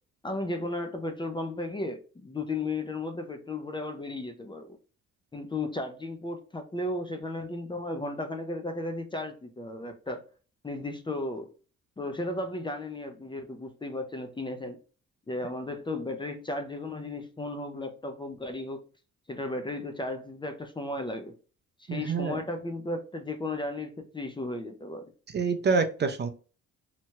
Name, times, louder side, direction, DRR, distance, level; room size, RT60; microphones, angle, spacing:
voice 1, 0.2-4.8 5.3-10.2 10.6-11.5 12.0-14.8 15.3-18.9 19.3-21.3 21.8-25.1, left 2 dB, 15° left, 0.5 m, -35 dB
voice 2, 21.9-22.4 25.3-26.3, right 5 dB, 35° right, 0.5 m, -27 dB
2.9 x 2.2 x 2.9 m
cardioid pair, 90°, 30 cm